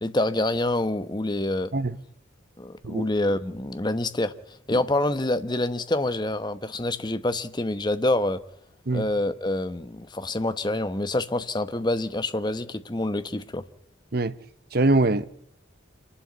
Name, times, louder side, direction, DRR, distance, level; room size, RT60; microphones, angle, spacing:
voice 1, 0.0-1.7 2.6-4.3 4.7-8.4 8.9-13.6, left 1 dB, 20° left, 1.0 m, -26 dB
voice 2, 14.7-15.3, right 2 dB, 50° right, 0.8 m, -22 dB
27.5 x 11.5 x 9.4 m
head